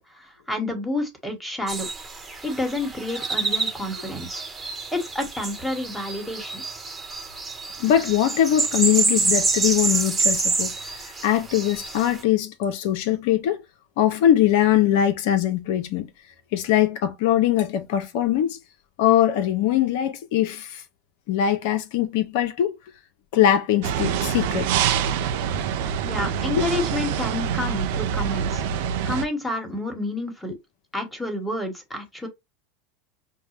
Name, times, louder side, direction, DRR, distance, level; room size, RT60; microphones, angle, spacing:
voice 1, 0.1-1.9 2.4-4.4 4.9-6.6 26.1-28.6 29.0-30.6 30.9-32.3, left 2 dB, ahead, 1.4 m, -29 dB
sound 1, 1.7-12.2, right 4 dB, 20° right, 1.1 m, -27 dB
voice 2, 7.8-10.7 11.2-13.6 14.0-16.1 16.5-18.6 19.0-20.8 21.3-22.7 23.3-24.7 26.5-26.7, left 11 dB, 65° left, 0.6 m, -21 dB
sound 2, 23.8-29.3, right 8 dB, 70° right, 0.6 m, -25 dB
5.4 x 2.2 x 3.2 m
hypercardioid pair, 90°, 0 cm